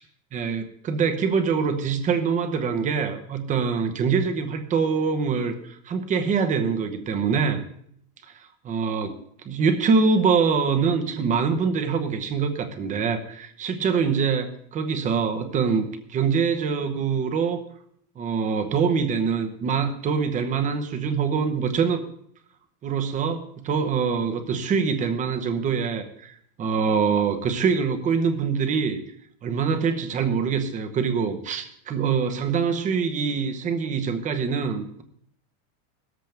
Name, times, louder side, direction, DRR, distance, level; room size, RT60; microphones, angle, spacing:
voice 1, 0.3-7.6 8.6-9.2 9.4-17.6 18.2-22.0 22.8-29.0 29.4-35.0, right 5 dB, 15° right, 8 dB, 0.9 m, -24 dB
17.5 x 14.0 x 3.5 m, 0.68 s
supercardioid pair, 175°, 45 cm